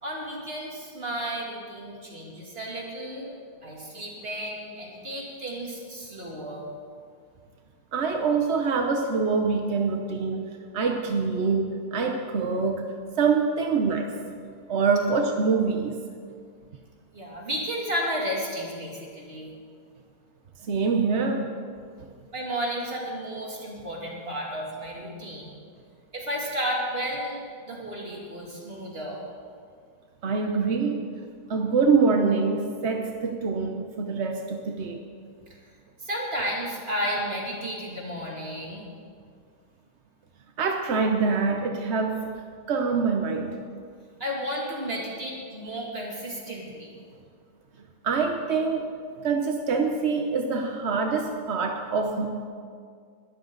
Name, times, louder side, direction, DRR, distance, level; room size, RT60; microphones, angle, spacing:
voice 1, 0.0-3.4 3.6-6.7 17.1-19.5 22.3-25.5 26.1-29.2 36.0-38.9 44.2-46.9, equal, 25° right, -2 dB, 2.9 m, -33 dB
voice 2, 7.9-12.8 13.2-14.2 14.7-16.0 20.6-21.6 30.2-31.1 31.5-35.0 40.6-42.3 42.7-43.6 48.0-48.9 49.2-52.4, right 4 dB, 50° right, 3 dB, 0.8 m, -25 dB
21.5 x 13.5 x 4.0 m, 2.1 s
omnidirectional pair, 2.3 m